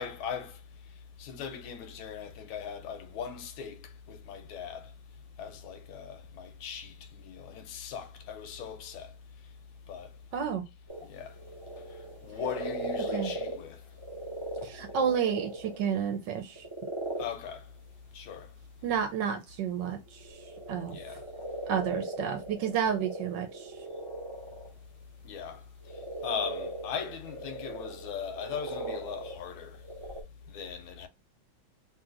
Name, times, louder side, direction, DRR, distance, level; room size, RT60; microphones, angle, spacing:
voice 1, 0.0-4.9 5.4-9.5 9.9-10.2 11.0-11.4 11.8-13.9 17.2-17.7 18.1-18.5 20.9-21.3 25.2-29.8 30.4-31.1, left 7 dB, 85° left, 1.4 m, -40 dB
voice 2, 10.3-10.6 13.1-13.3 14.6-16.7 18.8-20.4 20.7-21.0 21.7-23.7, right 8 dB, 70° right, 1.1 m, -31 dB
sound 1, 10.9-13.7 14.0-16.0 16.5-17.5 19.9-24.7 25.5-25.6 25.8-29.4 29.7-30.2, right 1 dB, 45° right, 0.3 m, -38 dB
3.1 x 2.7 x 2.4 m
omnidirectional pair, 2.2 m